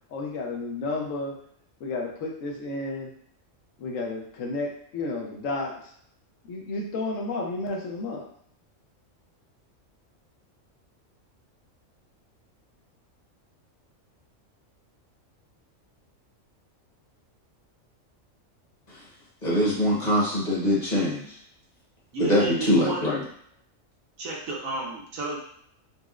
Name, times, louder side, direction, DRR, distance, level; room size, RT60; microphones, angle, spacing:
voice 1, 0.1-1.3 1.8-3.1 3.8-5.9 6.5-8.3, left 2 dB, 75° left, 0 dB, 1.0 m, -32 dB
voice 2, 19.4-21.4 22.2-23.2, left 1 dB, 35° left, -6 dB, 1.0 m, -23 dB
voice 3, 22.1-23.1 24.2-25.4, right 3 dB, 90° right, -3 dB, 1.3 m, -32 dB
4.1 x 2.0 x 2.4 m, 0.66 s
omnidirectional pair, 1.4 m